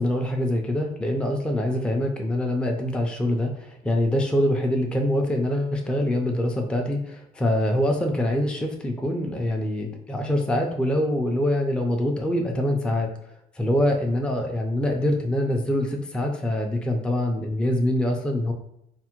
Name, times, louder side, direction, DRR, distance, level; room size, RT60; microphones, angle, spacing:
voice 1, 0.0-13.1 13.6-18.5, left 1 dB, 5° left, 2 dB, 0.4 m, -24 dB
3.3 x 2.1 x 2.9 m, 0.76 s
cardioid pair, 110°, 17 cm